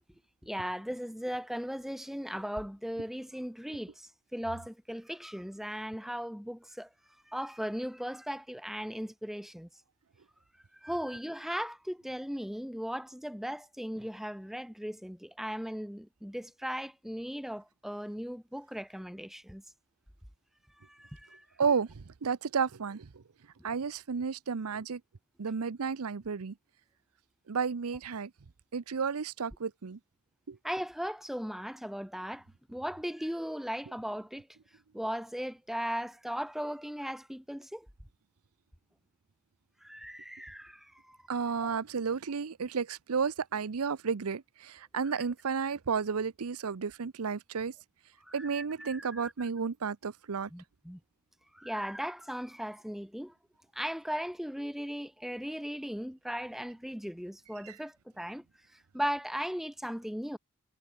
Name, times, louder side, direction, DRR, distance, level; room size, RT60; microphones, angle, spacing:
voice 1, 0.4-6.9 7.3-9.7 10.7-19.6 20.8-21.5 30.6-34.5 34.9-37.9 39.8-41.8 45.0-45.2 48.2-49.5 50.5-51.0 51.5-53.3 53.7-58.4 58.7-60.4, equal, ahead, 1.3 m, -38 dB
voice 2, 21.6-23.1 23.6-25.0 25.4-26.5 27.5-28.3 28.7-30.0 30.5-30.6 41.3-47.7 48.3-50.5 57.6-57.8, right 5 dB, 85° right, 0.6 m, -32 dB
head